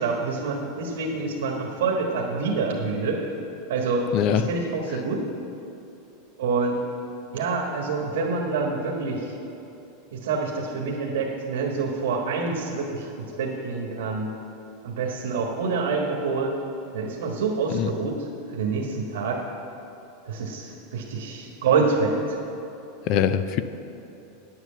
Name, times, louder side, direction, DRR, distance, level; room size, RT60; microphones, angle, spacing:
voice 1, 0.0-3.2 3.7-4.0 4.3-5.2 6.4-6.8 7.3-9.3 10.1-14.3 14.8-16.5 16.9-18.1 18.5-19.4 20.3-22.4, right 4 dB, 85° right, 0 dB, 1.5 m, -26 dB
voice 2, 4.1-4.5 4.9-5.0 17.7-17.9 23.1-23.6, left 9 dB, 45° left, 12 dB, 0.5 m, -23 dB
9.5 x 7.8 x 7.7 m, 2.9 s
supercardioid pair, 155°, 0 cm